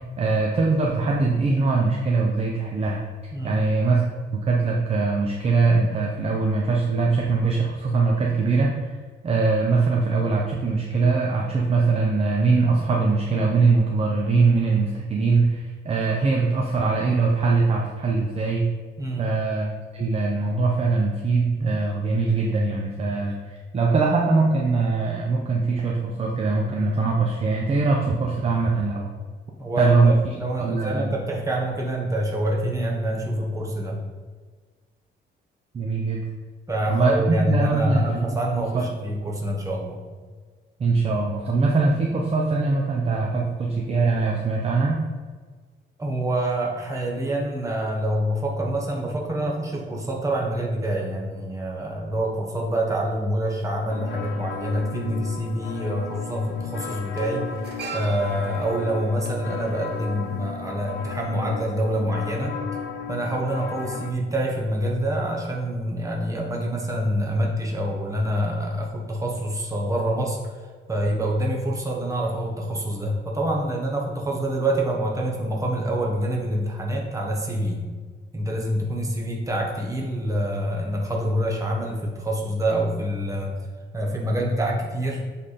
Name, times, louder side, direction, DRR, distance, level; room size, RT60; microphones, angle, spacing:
voice 1, 0.0-3.0 3.4-4.1 4.3-9.0 9.2-18.7 19.2-29.1 29.8-31.1 35.7-36.2 36.9-38.8 40.8-45.0, right 3 dB, 30° right, -1 dB, 0.6 m, -22 dB
voice 2, 29.6-34.0 36.7-40.0 46.0-57.5 57.9-62.6 63.1-70.4 70.9-77.8 78.3-83.5 83.9-85.3, right 1 dB, 15° right, -2 dB, 1.2 m, -26 dB
sound 1, 53.9-64.1, left 5 dB, 70° left, 0.6 m, -35 dB
sound 2, 54.7-54.8 56.0-56.2 56.5-60.8 61.1-61.3, right 4 dB, 55° right, 1.1 m, -41 dB
7.5 x 3.5 x 4.2 m, 1.5 s
cardioid pair, 140°, 20 cm